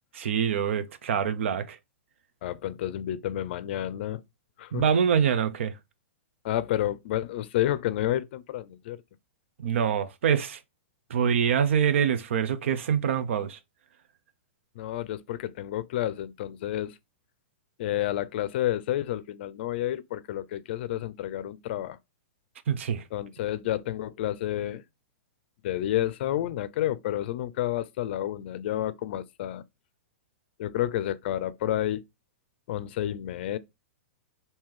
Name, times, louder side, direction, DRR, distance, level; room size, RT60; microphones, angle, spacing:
voice 1, 0.1-1.8 4.7-5.8 9.6-10.6 11.1-13.6 22.7-23.0, right 7 dB, 70° right, 0.6 m, -25 dB
voice 2, 2.4-4.2 4.6-4.8 6.4-9.0 14.8-17.0 17.8-22.0 23.1-24.8 25.6-29.6 30.6-32.0 32.7-33.6, left 12 dB, 55° left, 0.4 m, -30 dB
3.0 x 2.8 x 3.6 m
hypercardioid pair, 140°, 7 cm